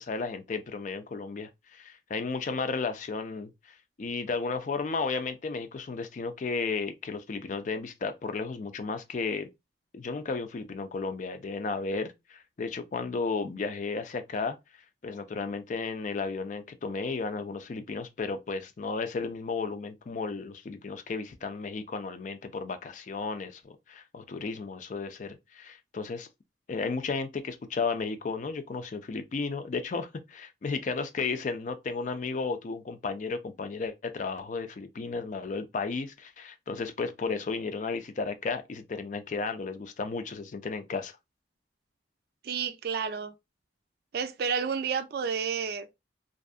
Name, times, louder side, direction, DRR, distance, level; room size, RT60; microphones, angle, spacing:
voice 1, 0.0-9.5 9.9-14.6 15.0-26.3 26.7-41.2, left 4 dB, 45° left, 0.4 m, -34 dB
voice 2, 42.4-43.3 44.1-45.9, right 6 dB, 60° right, 0.4 m, -30 dB
2.6 x 2.4 x 2.4 m
head